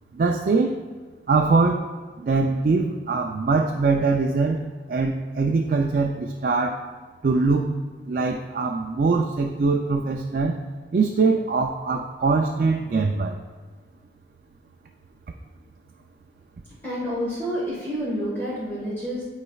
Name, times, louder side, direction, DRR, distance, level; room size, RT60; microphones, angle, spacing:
voice 1, 0.1-0.8 1.3-1.8 2.2-6.9 7.2-7.7 8.1-10.6 10.9-13.4, right 4 dB, 50° right, 2 dB, 0.3 m, -22 dB
voice 2, 16.7-19.3, equal, 10° left, -8 dB, 1.3 m, -29 dB
12.0 x 4.1 x 2.3 m, 1.4 s
head